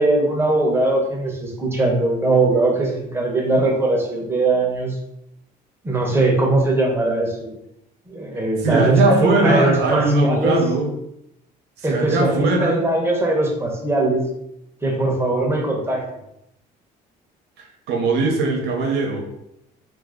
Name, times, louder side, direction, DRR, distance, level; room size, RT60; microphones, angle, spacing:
voice 1, 0.0-5.0 5.8-7.5 8.1-10.6 11.8-14.2 14.8-16.0, right 2 dB, 15° right, -1 dB, 0.9 m, -20 dB
voice 2, 8.6-10.9 11.8-12.7 17.6-19.2, right 3 dB, 85° right, 1 dB, 0.9 m, -20 dB
2.7 x 2.6 x 3.7 m, 0.80 s
cardioid pair, 110°, 17 cm